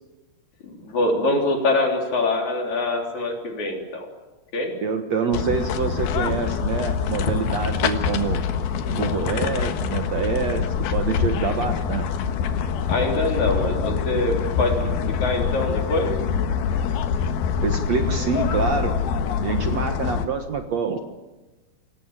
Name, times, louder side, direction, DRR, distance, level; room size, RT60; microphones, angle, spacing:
voice 1, 0.6-4.1 4.5-4.7 12.9-16.1, left 2 dB, 50° left, 2 dB, 4.8 m, -24 dB
voice 2, 4.8-8.4 8.9-12.1 17.6-19.0 19.4-21.0, right 5 dB, 55° right, 5 dB, 2.2 m, -26 dB
sound 1, 5.3-20.3, left 7 dB, 90° left, 3.3 m, -25 dB
27.0 x 17.5 x 9.0 m, 1.1 s
omnidirectional pair, 4.3 m